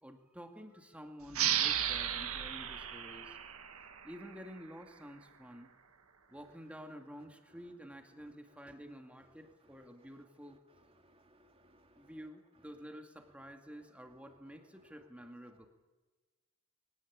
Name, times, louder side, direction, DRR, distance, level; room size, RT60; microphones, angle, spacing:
voice 1, 0.0-3.4 4.0-5.7 6.3-10.6 12.0-15.7, equal, 5° right, 4 dB, 2.2 m, -50 dB
sound 1, 1.3-4.6, right 10 dB, 70° right, 2.0 m, -35 dB
voice 2, 9.8-10.1 11.0-12.2, right 1 dB, 25° right, 4 dB, 2.9 m, -66 dB
24.0 x 18.0 x 8.7 m, 1.2 s
head